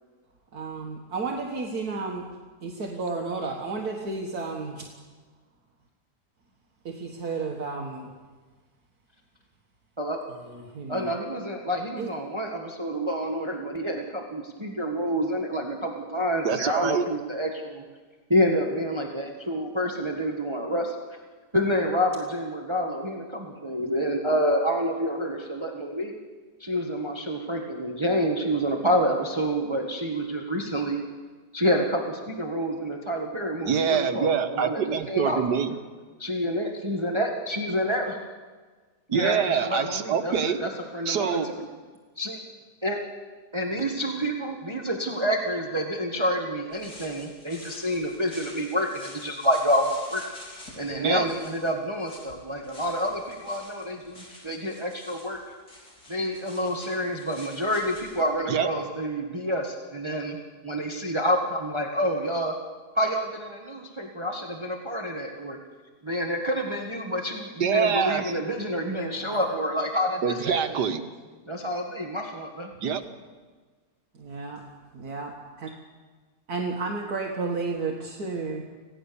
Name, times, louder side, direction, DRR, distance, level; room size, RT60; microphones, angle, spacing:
voice 1, 0.5-2.4 2.6-4.9 6.9-8.1 10.3-11.1 12.0-12.1 50.8-51.3 69.1-69.5 74.1-75.7 76.5-78.7, right 4 dB, 65° right, 1 dB, 2.0 m, -33 dB
voice 2, 10.9-17.8 18.3-20.9 21.5-26.1 26.6-31.1 31.5-35.4 36.2-38.2 39.1-41.7 42.2-42.4 42.8-43.0 43.5-50.2 50.5-55.4 56.1-60.4 60.6-62.5 62.9-65.6 66.0-70.6 71.5-72.7, equal, 15° right, 2 dB, 1.6 m, -28 dB
voice 3, 16.4-17.0 33.6-35.8 39.1-40.6 41.1-41.5 51.0-51.3 58.5-58.7 67.6-68.3 70.2-71.0 72.8-73.0, right 7 dB, 90° right, 8 dB, 1.9 m, -25 dB
Leaves Walking Forest Late Afternoon Vienna, 46.7-58.2, left 1 dB, 70° left, 4.9 m, -48 dB
27.0 x 17.0 x 7.1 m, 1.4 s
omnidirectional pair, 1.7 m